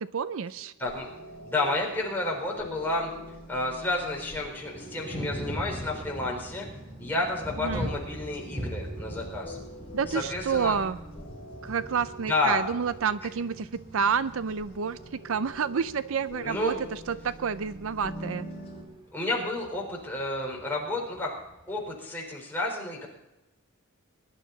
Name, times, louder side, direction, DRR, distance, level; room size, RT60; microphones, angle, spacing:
voice 1, 0.1-0.7 7.6-7.9 9.9-11.0 11.6-13.7 13.9-15.0 15.2-18.5, right 6 dB, 65° right, 14 dB, 0.5 m, -29 dB
sound 1, 0.8-18.8, right 1 dB, 30° left, 5.1 m, -45 dB
voice 2, 1.4-3.1 3.5-6.7 7.0-9.6 10.1-10.8 12.3-12.6 16.4-16.8 19.1-21.3 21.7-23.1, left 2 dB, 10° left, -2 dB, 4.0 m, -30 dB
Thunder, 4.0-21.9, equal, 20° right, 3.0 m, -42 dB
21.5 x 11.5 x 4.0 m, 0.96 s
head